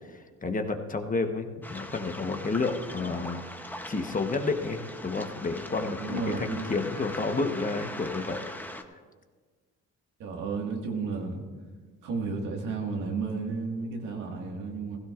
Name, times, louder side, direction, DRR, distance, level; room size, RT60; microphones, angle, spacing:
voice 1, 0.0-3.4 3.9-8.5, left 3 dB, 25° left, 6 dB, 1.1 m, -30 dB
Waves surf, 1.6-8.8, left 1 dB, 5° left, 0.8 m, -40 dB
voice 2, 5.9-6.8 10.2-11.4 12.0-15.0, right 4 dB, 90° right, 1 dB, 1.9 m, -33 dB
16.5 x 16.0 x 2.5 m, 1.5 s
cardioid pair, 90°, 30 cm